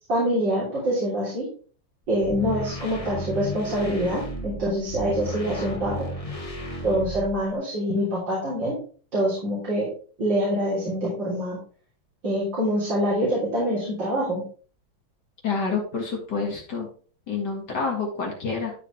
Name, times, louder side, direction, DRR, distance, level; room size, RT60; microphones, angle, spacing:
voice 1, 0.1-1.5 2.1-6.1 6.8-8.8 9.1-9.9 10.2-11.6 12.2-14.4, equal, 70° right, -7 dB, 4.2 m, -25 dB
sound 1, 2.0-7.5, equal, 20° left, 1.2 m, -34 dB
voice 2, 15.4-16.9 17.3-18.7, left 4 dB, 60° left, 0 dB, 2.5 m, -28 dB
12.5 x 4.8 x 3.3 m, 0.42 s
omnidirectional pair, 2.1 m